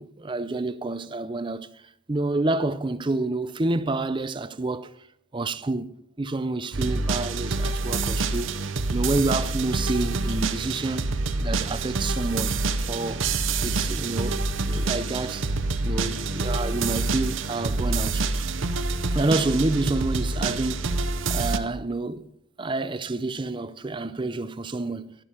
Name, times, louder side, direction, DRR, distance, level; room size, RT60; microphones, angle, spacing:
voice 1, 0.0-1.7 2.1-4.9 5.3-8.5 8.9-11.1 11.4-12.6 12.9-13.3 13.6-15.5 15.8-18.5 19.1-20.9 21.3-22.3 22.6-25.2, right 2 dB, 25° right, 0.5 m, -28 dB
sound 1, 6.7-21.6, right 3 dB, 65° right, 0.8 m, -27 dB
12.0 x 11.5 x 4.4 m
head